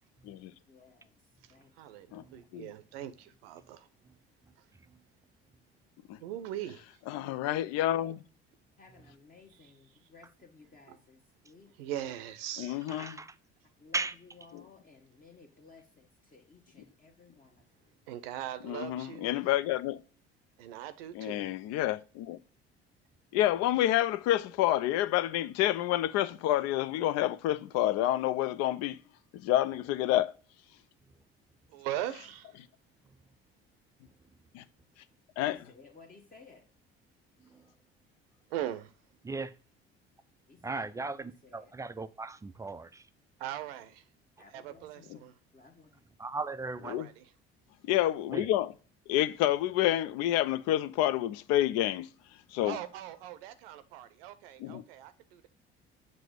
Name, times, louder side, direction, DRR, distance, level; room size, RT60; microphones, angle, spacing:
voice 1, 0.6-1.1 1.5-2.6 3.2-3.3 8.8-11.7 13.8-17.9 32.2-32.3 34.6-34.7 35.5-36.6 40.5-41.7 43.5-43.9 44.4-46.0, left 4 dB, 25° left, 1.1 m, -58 dB
voice 2, 1.8-3.9 6.2-6.8 10.9-11.0 11.8-12.9 18.1-19.3 20.6-21.5 31.7-32.5 38.5-38.9 43.4-44.0 44.5-45.3 46.8-47.3 52.6-55.5, right 12 dB, 70° right, 0.6 m, -40 dB
voice 3, 7.1-8.2 12.6-13.2 14.5-14.6 18.6-20.0 21.1-22.4 23.3-29.0 29.3-30.3 34.5-34.6 35.4-35.6 45.1-45.2 46.9-47.1 47.8-48.7 49.1-52.1 52.5-52.8 54.6-54.8, left 13 dB, 55° left, 0.5 m, -28 dB
voice 4, 12.9-13.3 13.9-14.2 37.5-37.6 39.2-39.5 40.6-43.0 46.2-46.9 48.3-48.5, right 3 dB, 10° right, 0.3 m, -37 dB
7.4 x 2.6 x 4.9 m
figure-of-eight pair, 55°, 31 cm